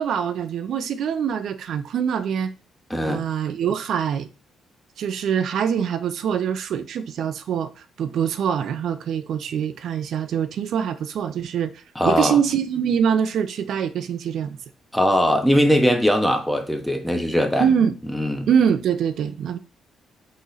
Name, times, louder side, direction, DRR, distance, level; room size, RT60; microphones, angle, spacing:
voice 1, 0.0-2.5 3.0-4.3 5.0-14.6 17.6-17.9 18.5-19.6, right 8 dB, 70° right, 0.4 m, -24 dB
voice 2, 2.9-3.3 12.0-12.4 14.9-17.6 18.1-18.5, equal, 5° left, 0.8 m, -20 dB
3.8 x 3.0 x 3.9 m
cardioid pair, 90°, 0 cm